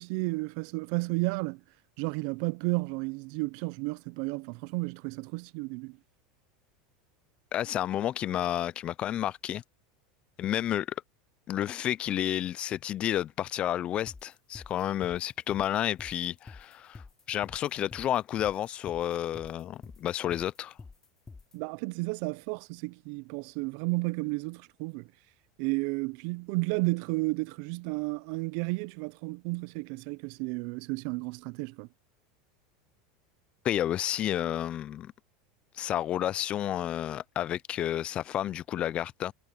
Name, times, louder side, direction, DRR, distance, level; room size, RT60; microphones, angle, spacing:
voice 1, 0.0-1.6 2.0-6.0 21.5-25.1 25.6-31.9, right 27 dB, 60° right, 0.5 m, -32 dB
voice 2, 7.5-9.6 10.4-11.0 11.5-20.8 33.6-35.1 35.7-39.3, left 11 dB, 35° left, 0.4 m, -31 dB
sound 1, 14.1-21.6, left 4 dB, 15° left, 3.2 m, -48 dB
supercardioid pair, 130°, 3 cm